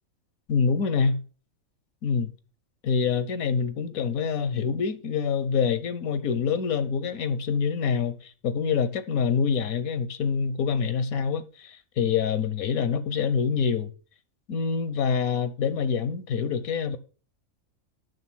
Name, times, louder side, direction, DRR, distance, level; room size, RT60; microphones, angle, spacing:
voice 1, 0.5-1.2 2.0-2.3 2.8-13.9 14.5-17.0, left 6 dB, 80° left, 1.4 m, -26 dB
9.4 x 6.6 x 6.3 m
omnidirectional pair, 1.5 m